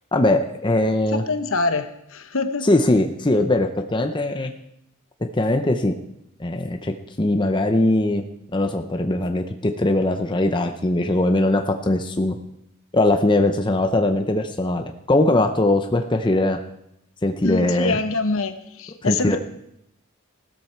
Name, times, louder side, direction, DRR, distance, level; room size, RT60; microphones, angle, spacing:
voice 1, 0.1-1.2 2.6-4.5 5.3-6.0 6.4-8.2 8.5-12.4 12.9-16.6 17.2-18.0 19.0-19.4, left 2 dB, 20° left, 5 dB, 0.7 m, -21 dB
voice 2, 1.1-2.6 17.4-19.4, left 3 dB, 60° left, 9 dB, 1.0 m, -25 dB
16.0 x 13.0 x 4.5 m, 0.81 s
head